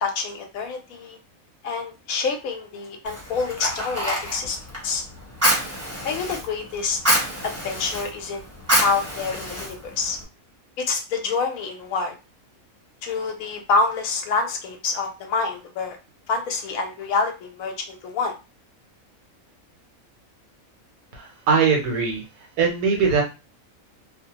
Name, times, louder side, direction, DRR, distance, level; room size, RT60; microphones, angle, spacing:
voice 1, 0.0-1.2 1.6-4.6 4.8-5.0 6.0-7.0 7.4-8.4 8.8-10.2 10.8-12.1 13.0-16.0 16.3-18.3, left 4 dB, 80° left, 4 dB, 1.1 m, -27 dB
Fire, 3.0-10.2, equal, 15° right, 0.6 m, -27 dB
voice 2, 21.1-23.2, right 5 dB, 90° right, 1 dB, 1.2 m, -21 dB
2.7 x 2.1 x 2.8 m, 0.28 s
omnidirectional pair, 1.5 m